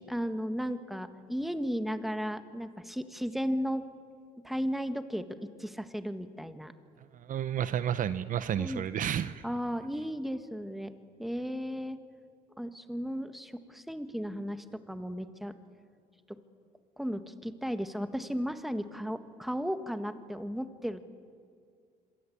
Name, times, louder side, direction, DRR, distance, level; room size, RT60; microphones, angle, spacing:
voice 1, 0.0-3.8 4.4-6.7 8.6-8.8 9.4-10.9 11.2-12.0 12.6-15.5 16.3-16.4 17.0-21.0, equal, ahead, 9 dB, 1.6 m, -35 dB
voice 2, 7.1-9.4, right 9 dB, 50° right, 14 dB, 0.8 m, -31 dB
26.5 x 23.0 x 8.6 m, 2.2 s
cardioid pair, 110°, 17 cm